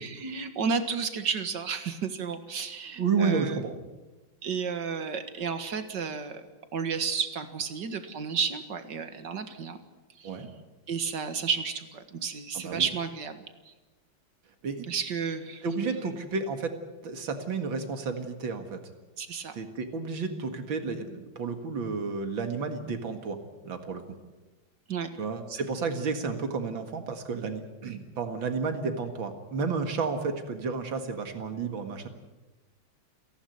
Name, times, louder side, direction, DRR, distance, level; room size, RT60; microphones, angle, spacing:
voice 1, 0.0-3.6 4.4-6.4 6.7-9.8 10.2-10.4 10.9-13.7 14.9-15.6 19.2-19.6 24.9-25.1, right 6 dB, 65° right, 9 dB, 2.3 m, -32 dB
voice 2, 3.0-3.8 10.2-10.5 12.5-12.9 14.6-14.9 15.6-16.7 17.0-18.8 19.5-23.4 23.6-24.2 25.2-32.1, right 4 dB, 85° right, 7 dB, 2.7 m, -31 dB
30.0 x 11.5 x 9.4 m, 1.1 s
omnidirectional pair, 2.1 m